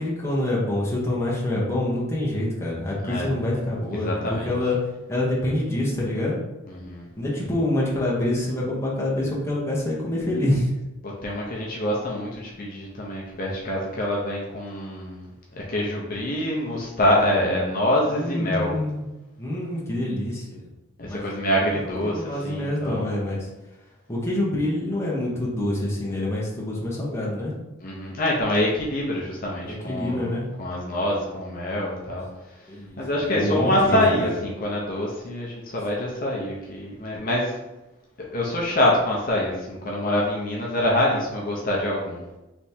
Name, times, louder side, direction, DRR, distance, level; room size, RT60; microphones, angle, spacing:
voice 1, 0.0-4.8 5.1-6.4 7.2-10.6 18.1-19.0 19.4-20.6 21.1-21.3 22.0-23.5 24.1-27.5 29.6-30.5 32.7-34.3, left 1 dB, 15° left, -5 dB, 0.9 m, -26 dB
voice 2, 3.0-3.3 3.9-4.5 6.7-7.1 11.0-18.7 21.0-23.1 27.8-32.2 33.0-37.6 38.3-42.2, left 1 dB, 40° left, -4 dB, 0.7 m, -25 dB
3.4 x 3.1 x 4.2 m, 1.0 s
head